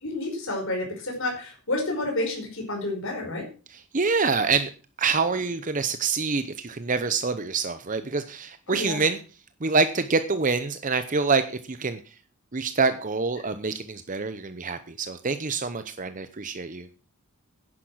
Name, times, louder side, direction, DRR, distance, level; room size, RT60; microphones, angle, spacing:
voice 1, 0.0-3.4 8.7-9.0, left 2 dB, 60° left, 1 dB, 5.3 m, -30 dB
voice 2, 3.9-4.7 5.0-9.2 9.6-11.4 11.7-12.0 12.5-16.9, right 4 dB, 35° right, 10 dB, 0.8 m, -26 dB
10.5 x 10.5 x 6.2 m, 0.36 s
head